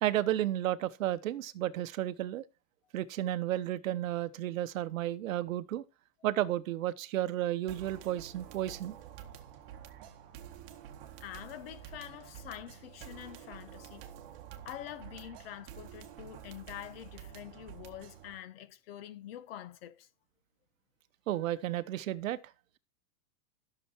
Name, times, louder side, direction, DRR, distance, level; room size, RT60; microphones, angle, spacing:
voice 1, 0.0-2.4 2.9-5.8 6.2-8.9 21.3-22.4, right 13 dB, 60° right, 1.1 m, -32 dB
sound 1, 7.7-18.3, right 10 dB, 35° right, 1.7 m, -49 dB
voice 2, 11.2-14.1 14.6-20.1, left 11 dB, 40° left, 1.1 m, -46 dB
14.0 x 7.0 x 4.4 m
supercardioid pair, 175°, 46 cm